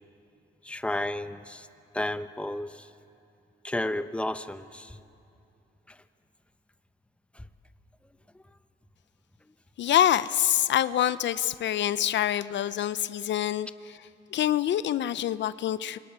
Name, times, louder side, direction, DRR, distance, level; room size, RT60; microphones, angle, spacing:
voice 1, 0.6-1.7 1.9-2.9 3.6-5.0 5.9-6.0 7.3-7.5, left 1 dB, 5° left, 10 dB, 0.9 m, -32 dB
voice 2, 9.8-14.0 14.3-16.0, left 11 dB, 65° left, 15 dB, 0.6 m, -26 dB
27.0 x 22.5 x 9.5 m, 2.6 s
cardioid pair, 90°, 20 cm